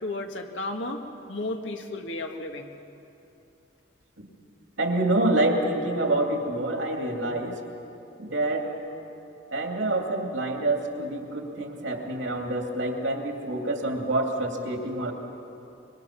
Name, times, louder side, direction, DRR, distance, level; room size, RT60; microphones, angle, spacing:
voice 1, 0.0-1.0 1.3-2.7, left 2 dB, 75° left, 4 dB, 1.8 m, -33 dB
voice 2, 4.8-7.6 8.2-8.7 9.5-15.1, right 2 dB, 70° right, 2 dB, 2.7 m, -27 dB
25.0 x 23.0 x 6.0 m, 2.8 s
head